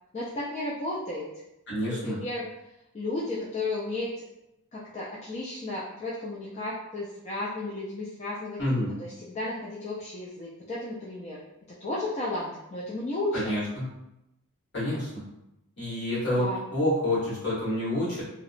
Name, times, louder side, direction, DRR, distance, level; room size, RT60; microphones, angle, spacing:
voice 1, 0.1-1.3 1.8-2.5 2.9-4.1 4.7-8.6 9.0-11.4 11.8-13.5 16.3-16.6, left 2 dB, 30° left, -6 dB, 0.3 m, -33 dB
voice 2, 1.7-2.2 8.6-8.9 13.3-13.9 14.7-15.1 15.8-18.2, left 1 dB, 55° left, -8 dB, 1.2 m, -28 dB
2.7 x 2.1 x 2.4 m, 0.87 s
head